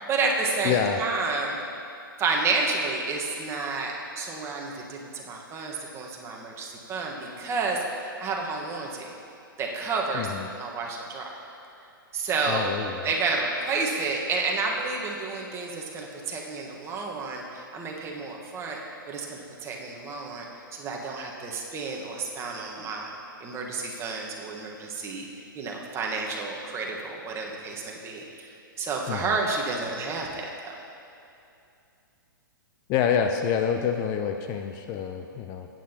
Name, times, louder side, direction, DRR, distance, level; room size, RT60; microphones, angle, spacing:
voice 1, 0.0-1.6 2.2-7.8 8.2-9.1 9.6-10.3 10.6-11.4 12.1-12.7 13.0-18.8 19.1-20.5 20.7-23.1 23.4-25.3 25.5-28.5 28.8-30.5, right 4 dB, 25° right, -1 dB, 1.3 m, -30 dB
voice 2, 0.6-1.0 10.1-10.5 12.5-13.1 29.1-29.4 32.9-35.7, left 7 dB, 35° left, 5 dB, 0.5 m, -27 dB
15.0 x 9.0 x 2.9 m, 2.6 s
hypercardioid pair, 120°, 12 cm